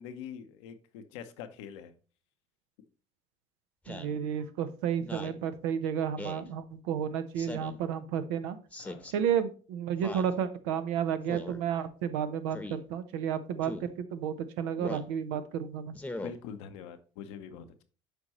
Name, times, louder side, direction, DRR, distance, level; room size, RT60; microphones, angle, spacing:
voice 1, 0.0-1.9 8.8-9.1 16.2-17.8, left 7 dB, 85° left, 0.8 m, -44 dB
Speech synthesizer, 3.8-4.2 5.0-5.4 6.2-6.5 7.4-7.8 8.7-9.1 10.0-10.3 11.3-11.6 12.5-12.8 13.6-13.9 14.8-15.1 15.9-16.3, left 2 dB, 10° left, 0.9 m, -40 dB
voice 2, 3.9-8.6 9.1-15.9, right 8 dB, 85° right, 0.8 m, -32 dB
8.0 x 5.2 x 3.0 m
supercardioid pair, 70°, 14 cm